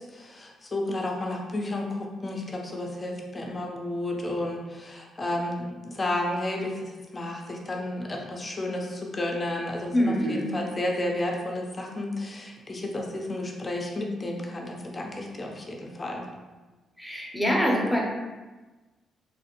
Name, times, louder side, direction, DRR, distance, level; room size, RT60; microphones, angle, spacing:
voice 1, 0.0-6.9 7.1-16.2, left 1 dB, 35° left, 1 dB, 0.6 m, -32 dB
voice 2, 9.9-10.6 17.0-18.0, equal, ahead, -3 dB, 0.8 m, -24 dB
3.2 x 2.1 x 2.9 m, 1.2 s
supercardioid pair, 60°, 0 cm